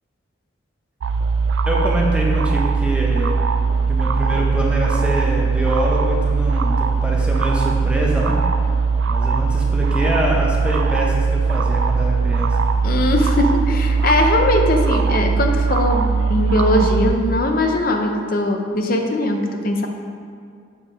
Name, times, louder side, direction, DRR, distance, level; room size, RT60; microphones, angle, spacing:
sound 1, 1.0-17.2, right 4 dB, 70° right, 0.4 m, -19 dB
voice 1, 1.6-3.4 3.9-8.7 9.1-12.7, equal, 5° right, -3 dB, 0.9 m, -24 dB
voice 2, 12.8-19.9, left 1 dB, 45° left, 4 dB, 0.6 m, -20 dB
7.2 x 4.7 x 5.0 m, 2.2 s
head